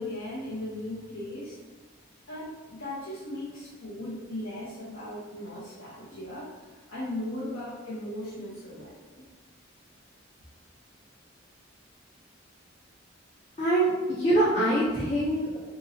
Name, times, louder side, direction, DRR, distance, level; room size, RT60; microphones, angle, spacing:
voice 1, 0.0-1.6 2.3-9.2, left 1 dB, 80° left, -9 dB, 0.8 m, -37 dB
voice 2, 13.6-15.6, right 1 dB, 40° left, -10 dB, 0.8 m, -24 dB
3.7 x 3.0 x 2.6 m, 1.3 s
head